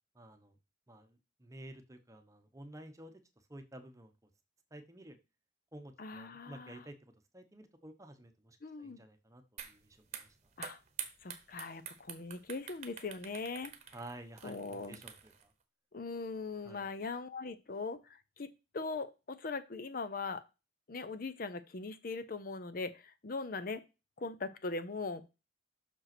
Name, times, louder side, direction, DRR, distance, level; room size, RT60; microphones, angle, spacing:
voice 1, 0.1-0.5 0.9-3.2 3.5-4.1 4.7-5.2 5.7-7.0 7.3-10.3 13.9-15.5 16.6-16.9, right 1 dB, 15° right, 7 dB, 0.9 m, -52 dB
voice 2, 6.0-6.8 8.6-9.0 10.6-10.8 11.2-13.7 14.4-15.0 15.9-18.5 18.7-20.4 20.9-23.8 24.2-25.2, left 3 dB, 50° left, 12 dB, 0.6 m, -40 dB
sound 1, 9.6-9.7 10.0-15.4, right 8 dB, 35° right, 1.0 m, -47 dB
6.2 x 5.3 x 6.0 m, 0.28 s
head